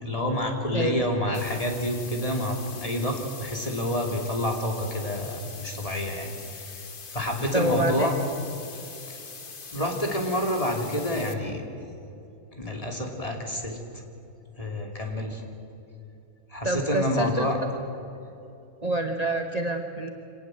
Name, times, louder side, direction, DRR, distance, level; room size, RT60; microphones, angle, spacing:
voice 1, 0.0-6.8 7.1-8.1 9.1-9.2 9.7-11.6 12.6-14.0 14.6-15.4 16.5-17.6, left 1 dB, 15° left, 2 dB, 2.8 m, -28 dB
voice 2, 0.7-1.4 7.5-8.1 16.6-17.5 18.8-20.1, right 2 dB, 30° right, 5 dB, 0.7 m, -27 dB
sound 1, 1.3-11.3, left 5 dB, 30° left, 1.0 m, -42 dB
25.5 x 18.5 x 7.8 m, 2.9 s
omnidirectional pair, 2.3 m